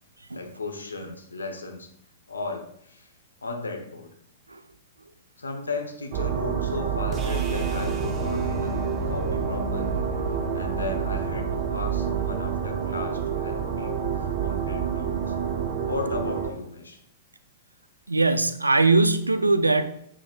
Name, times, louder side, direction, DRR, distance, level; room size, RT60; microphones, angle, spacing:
voice 1, 0.3-1.9 2.3-3.1 3.4-4.1 5.4-10.1 10.5-15.3 15.8-17.0, left 3 dB, 80° left, 4 dB, 1.2 m, -35 dB
sound 1, 6.1-16.5, right 8 dB, 50° right, 1.0 m, -28 dB
sound 2, 7.1-13.3, left 5 dB, 20° right, 1.0 m, -36 dB
voice 2, 18.1-20.0, right 3 dB, 85° right, 11 dB, 0.5 m, -21 dB
7.6 x 6.2 x 2.5 m, 0.71 s
figure-of-eight pair, 105°, 0 cm